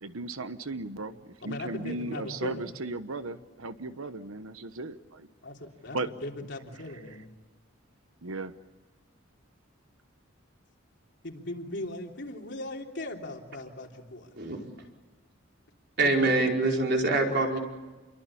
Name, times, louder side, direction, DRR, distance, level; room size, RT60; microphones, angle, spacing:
voice 1, 0.0-5.3 5.9-6.1 8.2-8.5, right 2 dB, 85° right, 11 dB, 1.2 m, -36 dB
voice 2, 1.4-2.6 5.4-7.3 11.2-14.3, left 1 dB, 55° left, 2 dB, 3.4 m, -39 dB
voice 3, 16.0-17.6, right 2 dB, 55° right, 1 dB, 4.9 m, -24 dB
29.5 x 23.0 x 8.8 m, 1.2 s
head